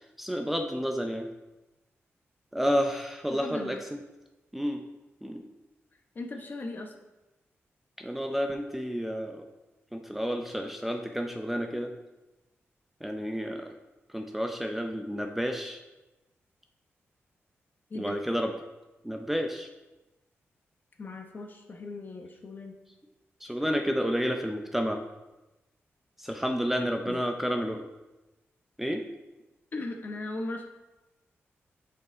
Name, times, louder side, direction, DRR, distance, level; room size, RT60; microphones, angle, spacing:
voice 1, 0.2-1.3 2.5-4.0 4.5-4.8 5.2-5.4 8.0-9.4 9.9-11.9 13.0-13.7 14.1-15.8 17.9-18.5 19.0-19.7 23.4-25.0 26.2-27.9 28.8-29.0, equal, 5° right, 4 dB, 0.5 m, -30 dB
voice 2, 3.3-3.8 6.1-6.9 17.9-18.2 21.0-22.8 27.0-27.2 29.7-30.7, left 2 dB, 45° left, 3 dB, 0.9 m, -38 dB
6.6 x 5.5 x 3.8 m, 1.0 s
wide cardioid pair, 105°, 5 cm